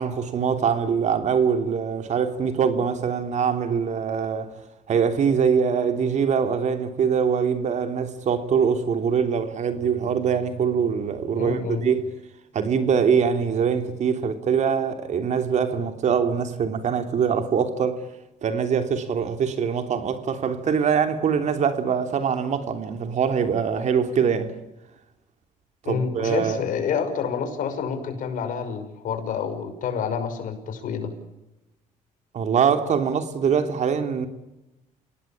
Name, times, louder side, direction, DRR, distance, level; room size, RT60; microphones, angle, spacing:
voice 1, 0.0-4.5 4.9-12.1 12.5-18.0 18.4-24.5 25.8-26.6 32.3-34.3, right 6 dB, 55° right, 3.2 m, -23 dB
voice 2, 11.3-11.8 25.8-31.1, left 6 dB, 70° left, 5.9 m, -28 dB
28.5 x 18.5 x 8.8 m
cardioid pair, 100°, 14 cm